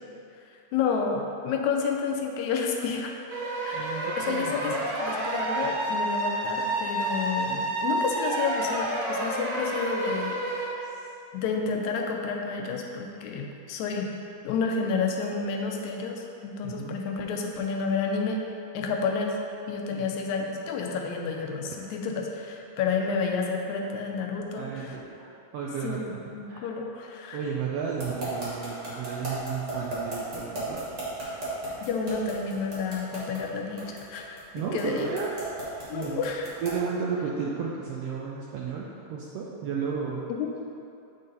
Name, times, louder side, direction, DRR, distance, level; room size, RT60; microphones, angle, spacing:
voice 1, 0.7-3.1 3.7-4.7 5.0-10.9 11.3-14.1 14.4-18.4 18.7-19.4 19.7-25.0 25.8-27.4 31.9-35.1 35.9-36.5 40.3-40.5, left 5 dB, 85° left, 1 dB, 2.0 m, -30 dB
sound 1, 3.3-10.7, right 1 dB, 60° right, 2.0 m, -29 dB
voice 2, 3.7-5.2 10.8-10.9 16.6-17.0 19.9-20.0 24.6-26.7 27.3-30.9 34.5-35.3 35.9-36.3 36.6-40.3, right 6 dB, 80° right, -3 dB, 1.4 m, -33 dB
sound 2, 28.0-36.9, right 1 dB, 40° right, 2.0 m, -35 dB
9.2 x 3.9 x 4.0 m, 2.6 s
omnidirectional pair, 3.3 m